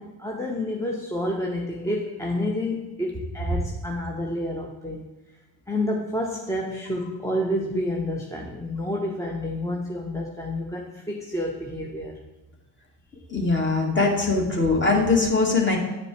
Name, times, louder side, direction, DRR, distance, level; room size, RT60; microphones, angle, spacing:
voice 1, 0.0-5.1 5.7-12.2, left 1 dB, 5° left, -1 dB, 0.9 m, -29 dB
voice 2, 13.3-15.8, left 3 dB, 25° left, 0 dB, 1.8 m, -21 dB
9.3 x 5.1 x 3.2 m, 1.1 s
figure-of-eight pair, 45°, 46 cm